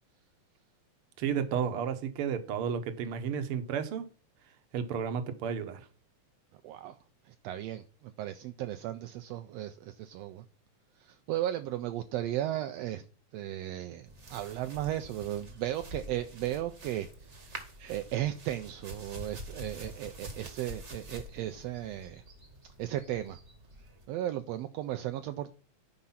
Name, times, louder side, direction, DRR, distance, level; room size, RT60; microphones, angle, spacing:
voice 1, 1.2-4.1 4.7-5.9, right 7 dB, 60° right, 1.6 m, -32 dB
voice 2, 6.6-7.0 7.2-10.4 11.0-13.1 13.3-22.2 22.8-23.4 24.1-25.5, right 13 dB, 80° right, 1.5 m, -36 dB
sound 1, 14.1-24.0, right 1 dB, 35° right, 1.2 m, -47 dB
11.0 x 4.9 x 5.7 m
omnidirectional pair, 3.4 m